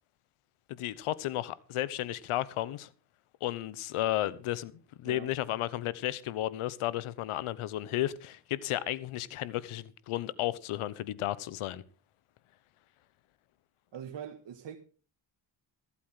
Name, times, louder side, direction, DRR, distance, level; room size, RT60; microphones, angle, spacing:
voice 1, 0.7-2.9 3.4-11.8, left 14 dB, 85° left, 1.0 m, -33 dB
voice 2, 13.9-14.8, right 8 dB, 60° right, 1.6 m, -42 dB
15.0 x 8.4 x 5.7 m
supercardioid pair, 60°, 49 cm